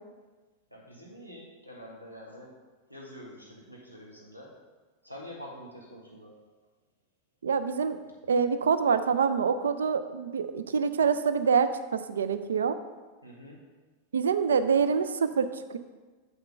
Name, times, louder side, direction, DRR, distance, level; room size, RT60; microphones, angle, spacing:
voice 1, 0.7-2.5 2.9-4.5 5.0-6.3 13.2-13.6, equal, 90° right, -2 dB, 1.3 m, -46 dB
voice 2, 7.4-8.0 8.3-12.8 14.1-15.8, right 6 dB, 65° right, 11 dB, 0.3 m, -26 dB
7.4 x 5.7 x 3.3 m, 1.3 s
figure-of-eight pair, 90°, 0 cm